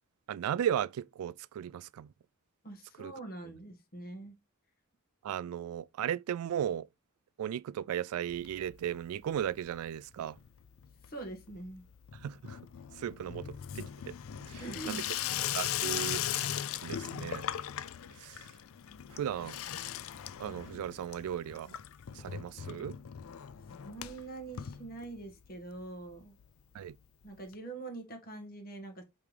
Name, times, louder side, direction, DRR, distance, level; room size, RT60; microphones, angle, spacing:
voice 1, 0.3-2.1 3.0-3.1 5.2-6.9 7.4-10.4 12.2-12.6 13.0-14.1 14.5-15.0 15.4-17.5 18.2-18.5 19.1-19.6 20.4-21.8 22.1-23.0 26.7-27.0, right 9 dB, 85° right, 0.3 m, -36 dB
voice 2, 2.6-4.3 11.0-11.8 14.5-15.3 23.8-26.3 27.2-29.0, right 2 dB, 45° left, 1.6 m, -44 dB
Water tap faucet / Sink (filling or washing), 8.3-9.1 9.3-9.9 10.2-25.5 25.8-25.9 26.1-26.2 26.4-26.5 27.5-27.6, left 10 dB, 70° left, 0.4 m, -39 dB
8.5 x 3.5 x 3.3 m
head